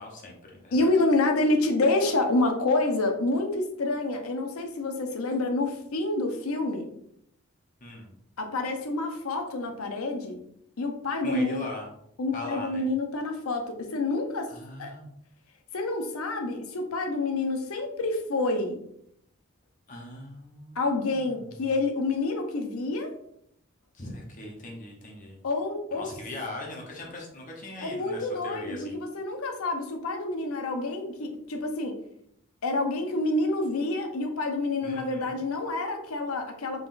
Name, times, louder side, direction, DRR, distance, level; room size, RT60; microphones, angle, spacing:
voice 1, 0.0-0.9 7.8-8.1 11.2-11.9 12.3-12.9 14.5-15.1 19.9-21.4 23.9-25.4 25.9-29.0 34.8-35.4, left 2 dB, 40° left, -1 dB, 0.8 m, -40 dB
voice 2, 0.7-6.9 8.4-10.4 10.8-11.6 12.2-14.5 14.8-14.9 15.7-18.8 20.8-23.1 25.4-26.1 27.8-32.0 32.6-36.9, left 2 dB, 85° left, 4 dB, 0.7 m, -28 dB
3.9 x 3.6 x 2.5 m, 0.72 s
head